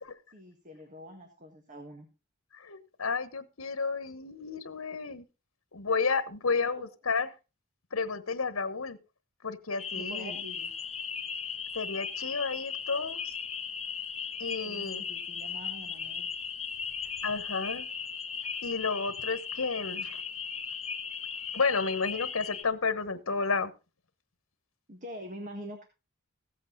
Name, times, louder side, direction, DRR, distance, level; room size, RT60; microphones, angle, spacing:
voice 1, 0.3-2.1 6.6-6.9 9.9-10.7 14.6-16.3 24.9-25.8, equal, 40° right, 5 dB, 1.7 m, -45 dB
voice 2, 2.5-5.3 5.7-7.3 7.9-9.0 9.4-10.4 11.7-13.3 14.4-15.1 17.2-17.9 18.6-20.2 21.5-23.7, left 4 dB, 85° left, 12 dB, 1.2 m, -31 dB
sound 1, 9.8-22.6, left 6 dB, 30° left, 1.3 m, -37 dB
15.5 x 8.2 x 4.0 m, 0.29 s
head